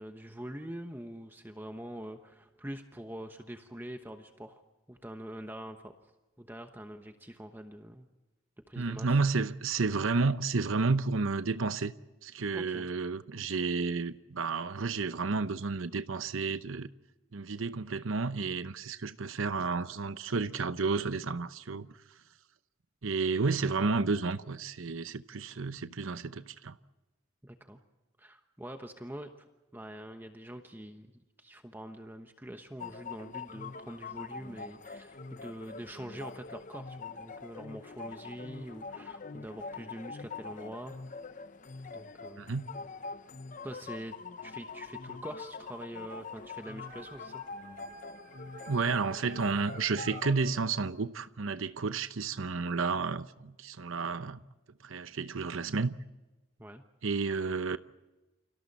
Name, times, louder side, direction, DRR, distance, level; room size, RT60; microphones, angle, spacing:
voice 1, 0.0-4.6 4.9-5.9 6.4-8.1 8.7-9.1 12.5-12.9 27.4-27.8 28.2-29.4 29.7-41.0 41.9-42.6 43.6-44.2 44.4-47.4 56.6-56.8, right 1 dB, 10° right, 1.1 m, -44 dB
voice 2, 8.8-11.9 12.2-16.9 17.3-22.0 23.0-26.8 42.4-42.6 48.7-54.4 54.8-55.9 57.0-57.8, right 4 dB, 85° right, 0.8 m, -31 dB
sound 1, 32.8-50.3, left 4 dB, 40° left, 0.7 m, -44 dB
Dog, 45.8-50.8, right 2 dB, 45° right, 4.5 m, -51 dB
29.5 x 26.0 x 4.2 m
head